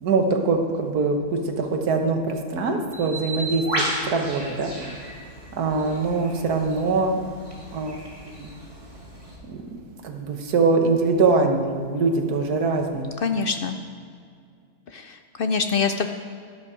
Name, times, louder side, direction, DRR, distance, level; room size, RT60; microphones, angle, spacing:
voice 1, 0.0-4.9 5.5-7.2 7.7-8.0 8.4-8.5 9.5-9.6 10.0-13.2, right 3 dB, 90° right, 4 dB, 1.7 m, -23 dB
Bird, 2.9-9.4, right 1 dB, 20° right, 2.6 m, -34 dB
voice 2, 13.2-13.8 14.9-16.1, left 5 dB, 85° left, 7 dB, 0.4 m, -25 dB
13.0 x 11.5 x 4.9 m, 2.3 s
omnidirectional pair, 1.6 m